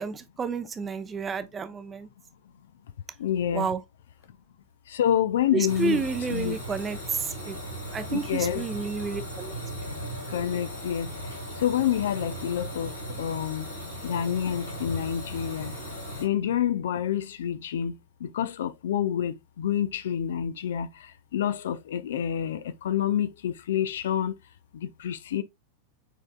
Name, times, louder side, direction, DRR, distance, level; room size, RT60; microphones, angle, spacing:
voice 1, 0.0-2.1 3.5-3.8 5.5-9.5, right 5 dB, 20° right, 0.6 m, -31 dB
voice 2, 3.2-3.7 4.9-6.0 6.3-6.6 8.1-8.7 10.3-11.1 11.6-13.7 14.0-15.7 16.2-24.4 24.7-25.4, left 10 dB, 60° left, 0.3 m, -28 dB
sound 1, 5.6-16.2, equal, 80° left, 1.9 m, -37 dB
6.4 x 3.6 x 2.2 m
figure-of-eight pair, 90°, 0 cm